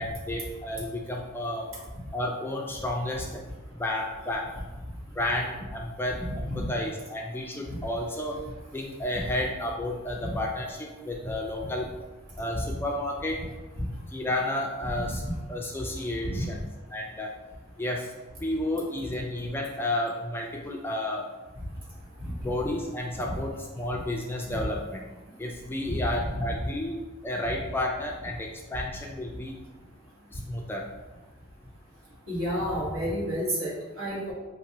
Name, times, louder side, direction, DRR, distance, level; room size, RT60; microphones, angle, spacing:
voice 1, 0.0-1.7 2.1-3.4 3.8-4.5 5.1-8.4 8.7-11.9 12.4-13.5 14.1-15.2 15.5-16.6 16.9-17.3 17.8-18.1 18.4-21.3 22.4-25.1 25.4-27.0 27.2-29.6 30.3-30.9, left 1 dB, 10° left, 0 dB, 0.3 m, -31 dB
voice 2, 6.2-6.7 10.2-10.4 11.1-11.3 13.8-13.9 14.9-15.1 16.3-16.4 22.2-22.5 23.2-23.4 24.5-24.7 25.8-26.0 26.3-26.5 32.3-34.3, equal, 70° right, -6 dB, 1.5 m, -31 dB
5.0 x 2.6 x 2.8 m, 1.2 s
head